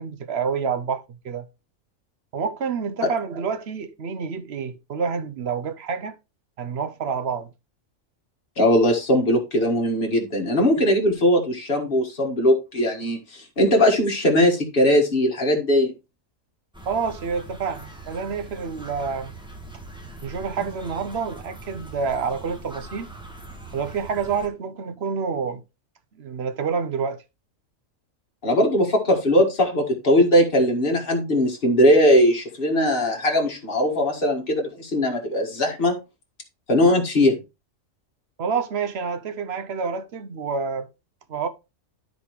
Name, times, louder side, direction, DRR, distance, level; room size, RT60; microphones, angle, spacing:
voice 1, 0.0-1.5 2.3-6.2 6.6-7.5 16.9-19.3 20.2-23.1 23.7-25.6 26.2-27.2 38.4-40.9 41.3-41.5, right 5 dB, 55° right, 0.9 m, -28 dB
voice 2, 8.6-15.9 28.4-35.9 36.7-37.4, left 1 dB, 45° left, 2.0 m, -20 dB
sound 1, 16.7-24.5, right 2 dB, 5° right, 1.3 m, -41 dB
13.0 x 4.3 x 3.1 m
omnidirectional pair, 1.4 m